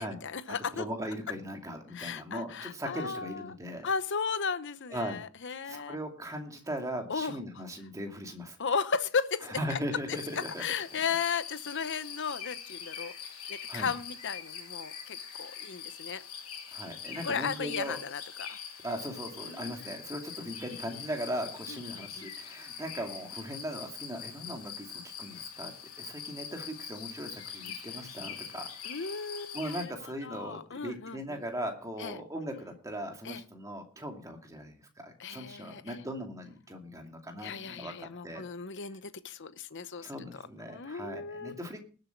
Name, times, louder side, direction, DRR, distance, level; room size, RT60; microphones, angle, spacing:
voice 1, 0.0-0.8 1.9-3.5 3.8-6.0 7.1-7.4 8.6-9.8 10.6-13.1 13.5-16.2 17.2-18.6 19.4-19.9 21.7-22.3 28.8-31.4 32.0-32.2 33.2-33.4 35.2-36.0 37.4-40.1 40.7-41.7, left 5 dB, 55° left, 0.9 m, -35 dB
voice 2, 0.7-3.9 4.9-5.2 5.7-8.6 9.5-10.6 13.7-13.9 16.7-18.0 18.8-24.9 25.2-29.1 29.5-38.4 40.0-41.8, equal, 15° right, 2.4 m, -39 dB
sound 1, 10.1-29.9, left 7 dB, 80° left, 3.5 m, -43 dB
19.5 x 7.9 x 4.5 m
head